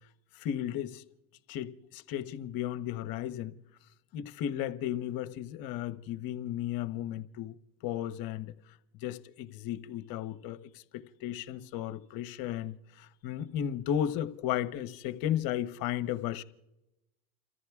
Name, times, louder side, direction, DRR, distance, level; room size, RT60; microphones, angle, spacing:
voice 1, 0.3-1.0 1.5-3.5 4.1-7.6 7.8-8.5 9.0-16.4, left 11 dB, 45° left, 1.0 m, -34 dB
29.5 x 14.0 x 2.4 m
supercardioid pair, 115°, 47 cm